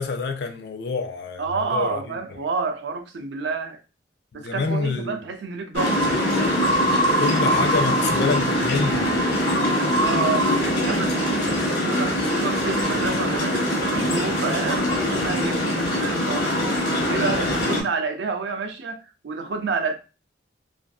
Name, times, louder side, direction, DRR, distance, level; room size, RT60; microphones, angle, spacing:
voice 1, 0.0-2.1 4.3-5.2 7.2-9.0, left 4 dB, 60° left, 0.4 m, -27 dB
voice 2, 1.4-3.8 4.3-6.3 9.7-16.5 17.0-19.9, right 4 dB, 70° right, 0.4 m, -29 dB
sound 1, 5.7-17.8, equal, 85° left, 0.9 m, -22 dB
2.5 x 2.3 x 2.3 m
head